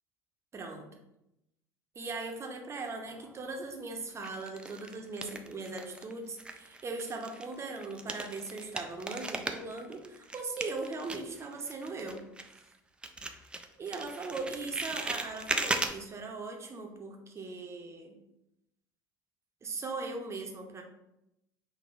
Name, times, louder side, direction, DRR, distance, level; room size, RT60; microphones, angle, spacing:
voice 1, 0.5-0.9 1.9-12.2 13.8-18.2 19.6-20.8, right 3 dB, 25° right, 3 dB, 0.8 m, -39 dB
sound 1, 3.0-3.7 4.2-6.1 6.4-12.8 13.0-15.9, right 2 dB, 10° right, 0.4 m, -38 dB
6.0 x 2.7 x 2.5 m, 0.86 s
figure-of-eight pair, 65°, 10 cm